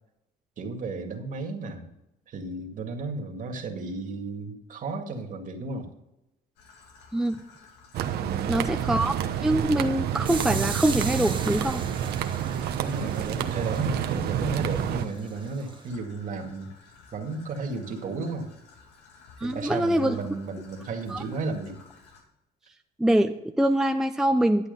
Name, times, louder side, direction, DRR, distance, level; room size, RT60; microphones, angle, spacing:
voice 1, 0.6-1.9 2.3-5.9 8.2-8.5 12.8-16.7 17.1-18.5 19.4-21.8, right 3 dB, 50° right, 4 dB, 2.1 m, -33 dB
Traffic noise roadway noise / Trickle dribble, 6.6-22.2, left 4 dB, 90° left, 2.6 m, -54 dB
sound 1, 7.9-15.1, right 9 dB, 70° right, 1.0 m, -29 dB
voice 2, 8.5-11.8 19.4-20.2 21.1-21.2 23.0-24.7, right 1 dB, 5° right, 6 dB, 0.5 m, -24 dB
sound 2, 10.2-15.9, right 5 dB, 30° right, 1.5 m, -39 dB
11.5 x 8.1 x 5.4 m, 0.89 s
cardioid pair, 110°, 17 cm